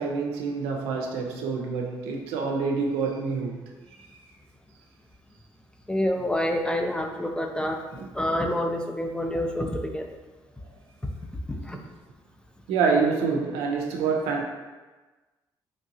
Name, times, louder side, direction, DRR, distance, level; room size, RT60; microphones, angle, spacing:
voice 1, 0.0-3.6 4.0-4.1 7.9-8.1 11.5-11.7 12.7-14.4, right 5 dB, 90° right, 1 dB, 0.4 m, -27 dB
voice 2, 5.9-7.8 8.1-10.1 11.0-11.1 11.5-11.8, left 1 dB, 10° left, 3 dB, 0.4 m, -27 dB
3.2 x 2.7 x 2.6 m, 1.2 s
supercardioid pair, 60°, 10 cm